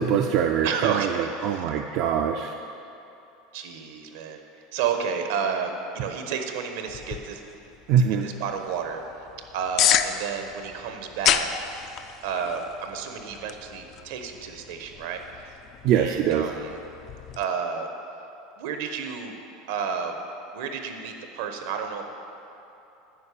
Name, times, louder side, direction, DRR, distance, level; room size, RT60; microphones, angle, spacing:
voice 1, 0.0-2.5 7.9-8.3 15.8-16.5, right 8 dB, 45° right, 4 dB, 0.4 m, -23 dB
voice 2, 0.6-1.7 3.5-7.4 8.2-9.0 9.5-11.5 12.2-15.5 15.9-16.8 17.4-17.9 18.6-19.4 19.7-20.2 20.5-22.0, right 6 dB, 70° right, 5 dB, 1.1 m, -31 dB
sound 1, 6.9-17.4, left 10 dB, 35° left, 0.3 m, -31 dB
9.7 x 5.6 x 8.4 m, 2.9 s
supercardioid pair, 165°, 0 cm